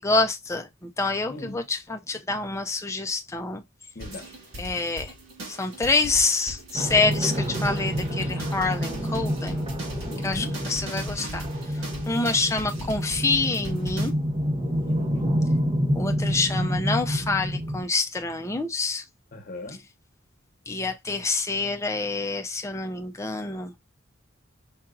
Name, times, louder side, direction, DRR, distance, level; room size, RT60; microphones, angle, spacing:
voice 1, 0.0-3.6 4.6-5.1 5.5-9.7 10.2-11.5 11.7-14.1 15.9-19.0 20.7-23.7, left 3 dB, 15° left, 0.5 m, -27 dB
voice 2, 1.3-1.7 3.9-4.3 10.1-10.6 14.8-15.4 16.6-16.8 19.3-19.8, left 1 dB, 45° left, 1.0 m, -38 dB
sound 1, 4.0-14.1, right 1 dB, 70° right, 2.1 m, -39 dB
sound 2, 6.7-17.8, equal, 25° right, 0.9 m, -28 dB
5.7 x 2.6 x 2.3 m
head